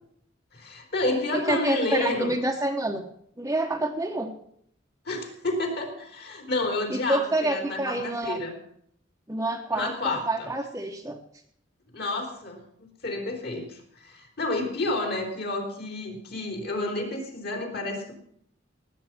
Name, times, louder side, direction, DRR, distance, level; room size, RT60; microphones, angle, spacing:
voice 1, 0.5-2.4 5.1-8.6 9.7-10.5 11.9-12.6 13.0-18.1, left 2 dB, 55° left, 4 dB, 3.7 m, -30 dB
voice 2, 1.3-3.1 3.4-4.3 6.9-8.4 9.3-11.2, right 1 dB, 15° right, -1 dB, 1.0 m, -28 dB
18.5 x 8.6 x 6.0 m, 0.67 s
head